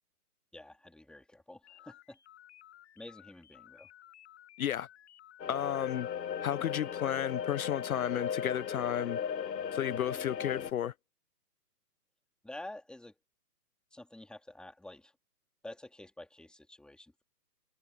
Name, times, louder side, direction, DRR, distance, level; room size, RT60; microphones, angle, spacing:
voice 1, 0.5-2.2 3.0-3.9 12.4-13.2 13.9-15.2 15.6-17.2, left 1 dB, ahead, 2.6 m, -49 dB
sound 1, 1.6-7.4, left 13 dB, 45° left, 5.8 m, -58 dB
sound 2, 5.4-10.7, left 8 dB, 80° left, 1.1 m, -37 dB
voice 2, 5.5-6.1 6.4-9.2 9.7-10.9, left 10 dB, 60° left, 0.7 m, -33 dB
hypercardioid pair, 140°, 49 cm